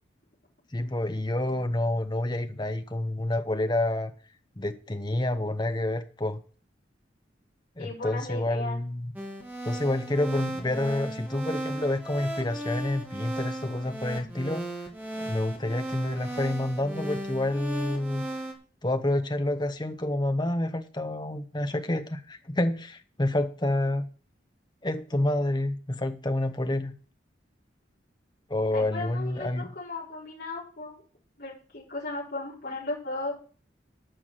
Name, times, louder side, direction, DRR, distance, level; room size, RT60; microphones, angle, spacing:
voice 1, 0.7-4.1 4.6-6.4 7.8-9.1 9.6-14.7 15.2-18.2 18.8-24.1 24.8-26.9 28.5-29.7, left 1 dB, 25° left, 0.9 m, -28 dB
voice 2, 7.8-8.8 28.7-31.0 31.4-33.3, left 2 dB, 55° left, 4.7 m, -36 dB
sound 1, 9.2-18.5, right 1 dB, 10° right, 2.4 m, -36 dB
11.5 x 6.0 x 7.6 m
head